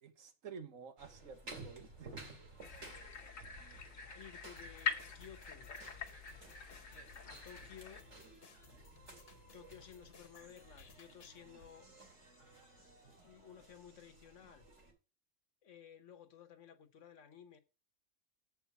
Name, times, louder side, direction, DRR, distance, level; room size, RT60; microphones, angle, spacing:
voice 1, 0.0-2.2, right 6 dB, 80° right, 1.5 m, -51 dB
sound 1, 1.0-14.9, right 2 dB, 65° right, 2.8 m, -56 dB
sound 2, 2.6-8.0, left 6 dB, 90° left, 1.6 m, -44 dB
voice 2, 4.0-5.7 7.2-8.1 9.3-11.9 13.2-14.7 15.6-17.6, left 8 dB, 70° left, 1.4 m, -56 dB
sound 3, 4.6-11.4, left 5 dB, 50° left, 1.4 m, -62 dB
7.8 x 4.7 x 7.0 m
omnidirectional pair, 1.3 m